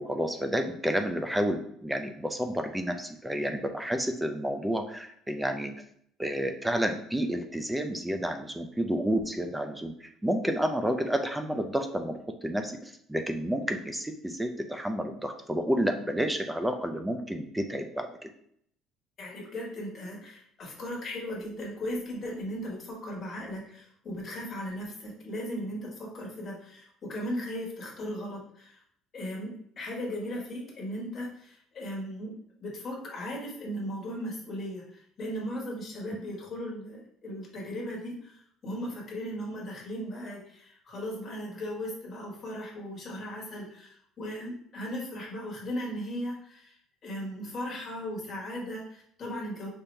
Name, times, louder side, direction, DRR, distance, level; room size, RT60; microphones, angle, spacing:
voice 1, 0.0-5.7 6.2-18.3, equal, 5° right, 6 dB, 0.5 m, -30 dB
voice 2, 19.2-28.8 29.1-32.3 32.6-46.7 47.0-49.7, equal, 30° left, -2 dB, 1.5 m, -37 dB
5.3 x 2.9 x 3.3 m, 0.67 s
cardioid pair, 145°, 0 cm